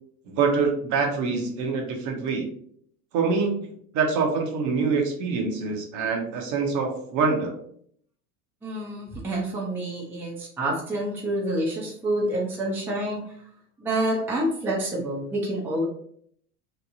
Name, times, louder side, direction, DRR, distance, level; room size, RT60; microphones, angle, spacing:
voice 1, 0.3-2.4 3.1-3.7 3.9-7.5, right 4 dB, 40° right, 3 dB, 0.7 m, -25 dB
voice 2, 8.6-13.2 13.8-15.8, right 1 dB, 5° right, -4 dB, 0.5 m, -28 dB
3.0 x 2.2 x 2.5 m, 0.64 s
hypercardioid pair, 100°, 47 cm